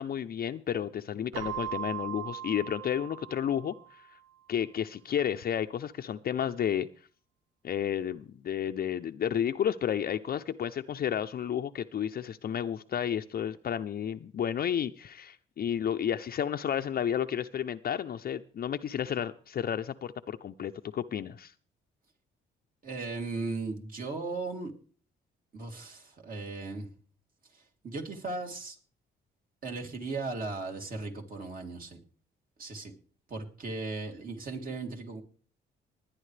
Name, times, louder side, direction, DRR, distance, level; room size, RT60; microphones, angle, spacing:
voice 1, 0.0-4.0 4.5-6.9 7.6-21.5, left 9 dB, 50° left, 7 dB, 0.6 m, -32 dB
Keyboard (musical), 1.3-4.1, right 11 dB, 85° right, 0.9 m, -39 dB
voice 2, 22.8-24.7 25.5-26.9 27.5-28.8 29.6-32.0 32.6-32.9 33.3-35.2, right 3 dB, 45° right, 3 dB, 2.9 m, -37 dB
20.0 x 10.0 x 3.3 m, 0.41 s
cardioid pair, 90°, 20 cm